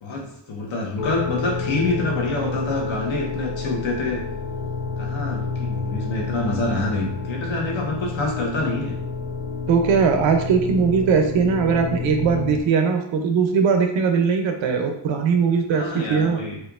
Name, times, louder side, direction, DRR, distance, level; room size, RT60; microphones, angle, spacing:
voice 1, 0.0-4.2 5.0-8.9 15.7-16.6, left 2 dB, 85° left, -1 dB, 1.1 m, -26 dB
sound 1, 1.0-12.6, left 4 dB, 65° left, 0.5 m, -29 dB
voice 2, 9.7-16.4, right 5 dB, 85° right, 5 dB, 0.6 m, -20 dB
4.4 x 2.5 x 2.4 m, 0.73 s
wide cardioid pair, 175°, 45 cm